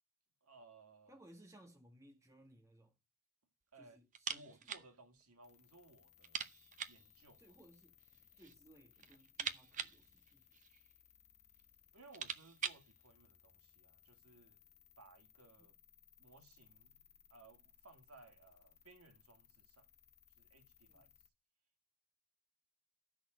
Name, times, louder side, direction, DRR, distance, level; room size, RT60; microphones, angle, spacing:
voice 1, 0.4-1.2 3.7-4.0 4.3-6.5 6.9-7.6 11.9-14.6 15.0-15.8 16.2-17.0 17.3-19.9 20.4-21.1, right 2 dB, 75° right, 2.0 m, -62 dB
voice 2, 1.1-3.0 3.7-4.7 7.4-8.0 8.4-10.5 15.6-15.7 20.9-21.1, right 1 dB, 15° right, 1.7 m, -63 dB
sound 1, 4.1-4.9 5.2-5.3 5.6-5.7 6.2-7.1 8.0-8.6 8.9-10.9 11.6-11.7 12.0-12.9, right 7 dB, 35° right, 0.7 m, -44 dB
sound 2, 5.4-21.3, left 9 dB, 30° left, 1.2 m, -67 dB
13.0 x 6.2 x 7.7 m
head